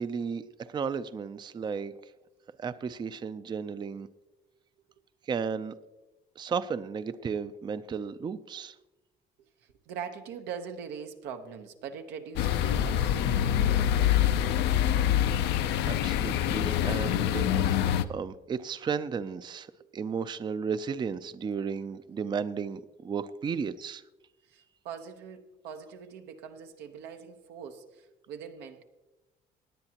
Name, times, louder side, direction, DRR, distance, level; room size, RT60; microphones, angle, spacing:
voice 1, 0.0-1.9 2.6-4.1 5.3-5.7 6.4-8.8 15.8-17.5 18.1-24.0, right 6 dB, 25° right, 0.4 m, -34 dB
voice 2, 9.9-13.6 24.5-28.8, right 7 dB, 90° right, 1.1 m, -42 dB
sound 1, 12.4-18.1, left 10 dB, 80° left, 0.6 m, -25 dB
17.5 x 9.8 x 2.9 m
cardioid pair, 110°, 17 cm